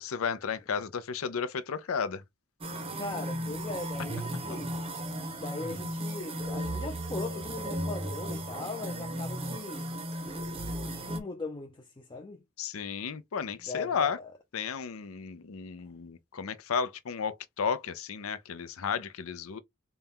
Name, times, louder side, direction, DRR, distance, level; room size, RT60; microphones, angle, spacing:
voice 1, 0.0-2.2 12.6-14.2 14.5-19.6, left 6 dB, 80° left, 0.5 m, -33 dB
sound 1, 2.6-11.2, right 1 dB, 25° right, 0.7 m, -35 dB
voice 2, 2.7-4.8 5.4-9.9 10.6-12.4 13.7-14.3, left 3 dB, 20° left, 0.5 m, -39 dB
4.1 x 2.2 x 3.6 m
head